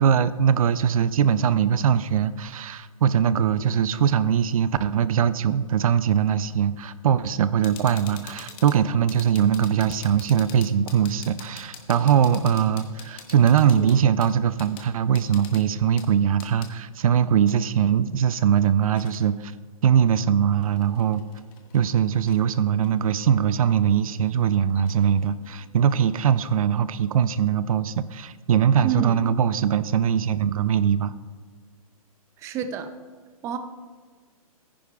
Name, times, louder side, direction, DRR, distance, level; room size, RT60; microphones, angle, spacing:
voice 1, 0.0-19.5 19.8-21.2 21.7-31.1, right 8 dB, 70° right, 15 dB, 0.5 m, -21 dB
sound 1, 7.6-16.7 17.4-19.2 20.1-20.2 20.6-21.9 22.2-22.4 22.8-25.6, left 7 dB, 25° left, 1.0 m, -46 dB
voice 2, 28.8-29.2 32.4-32.9 33.4-33.6, right 7 dB, 15° right, 8 dB, 0.5 m, -28 dB
14.5 x 10.0 x 2.4 m, 1.5 s
hypercardioid pair, 150°, 19 cm